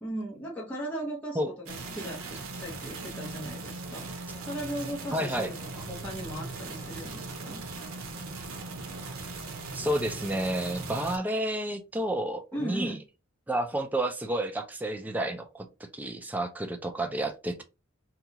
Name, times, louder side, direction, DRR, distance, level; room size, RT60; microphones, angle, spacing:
voice 1, 0.0-7.6 12.5-13.0, right 1 dB, 5° left, -6 dB, 0.7 m, -37 dB
sound 1, 1.7-11.2, right 3 dB, 85° right, 0.7 m, -39 dB
voice 2, 5.1-5.5 9.7-13.0 13.5-17.6, right 1 dB, 10° right, 6 dB, 0.3 m, -30 dB
2.8 x 2.3 x 3.8 m, 0.29 s
head